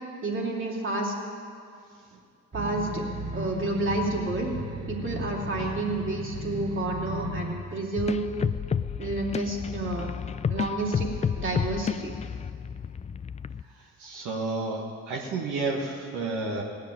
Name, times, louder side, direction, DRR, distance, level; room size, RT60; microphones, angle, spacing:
voice 1, 0.2-1.1 2.5-3.0 3.3-4.5 4.9-8.2 9.0-10.1 10.5-12.1, right 2 dB, 40° right, -1 dB, 3.0 m, -30 dB
sound 1, 2.5-7.5, right 1 dB, 25° right, 2.7 m, -35 dB
sound 2, 8.0-13.6, left 7 dB, 25° left, 0.3 m, -31 dB
voice 2, 13.8-16.6, right 3 dB, 85° right, -1 dB, 1.6 m, -31 dB
18.0 x 6.6 x 9.2 m, 2.3 s
cardioid pair, 90°, 30 cm